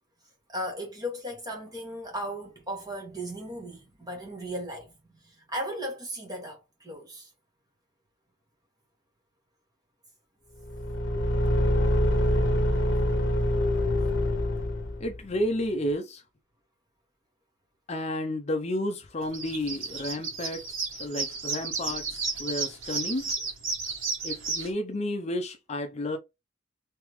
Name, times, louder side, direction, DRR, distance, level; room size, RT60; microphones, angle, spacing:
voice 1, 0.5-7.3, equal, 20° right, 1.5 m, -36 dB
Car / Engine, 10.6-15.2, left 1 dB, 65° left, 0.8 m, -25 dB
voice 2, 15.0-16.2 17.9-23.3 24.2-26.2, left 1 dB, 35° left, 0.5 m, -31 dB
sound 1, 19.2-24.7, right 4 dB, 85° right, 1.7 m, -32 dB
3.6 x 3.3 x 3.1 m
head